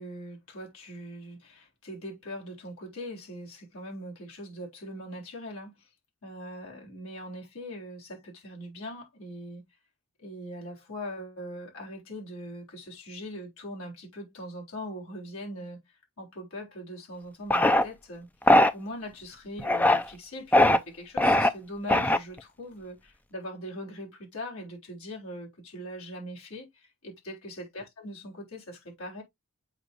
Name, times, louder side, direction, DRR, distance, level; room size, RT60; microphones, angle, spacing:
voice 1, 0.0-5.9 6.2-9.6 10.2-15.8 16.2-18.3 18.7-29.2, equal, 85° left, 3.8 m, -41 dB
sound 1, 17.5-17.8 18.5-18.7 19.6-20.0 20.5-20.8 21.2-21.5 21.9-22.4, left 1 dB, 10° left, 0.4 m, -20 dB
7.9 x 5.3 x 2.5 m
head